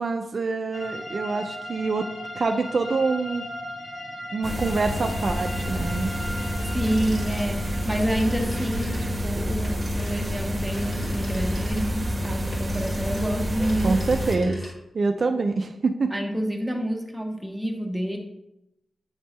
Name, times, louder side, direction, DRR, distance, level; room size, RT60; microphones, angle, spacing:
voice 1, 0.0-2.1 2.4-3.4 4.3-6.1 13.8-14.6 14.9-16.1, right 3 dB, 55° right, 5 dB, 0.4 m, -25 dB
sound 1, 0.7-12.3, equal, 65° left, 2.2 m, -39 dB
sound 2, 4.4-14.4, equal, 30° right, 1.1 m, -28 dB
voice 2, 6.7-14.0 14.4-14.5 16.1-18.2, equal, 5° right, 1 dB, 1.0 m, -28 dB
sound 3, 6.9-15.0, equal, 45° left, 1.7 m, -43 dB
8.7 x 3.4 x 3.2 m, 0.89 s
cardioid pair, 75°, 0 cm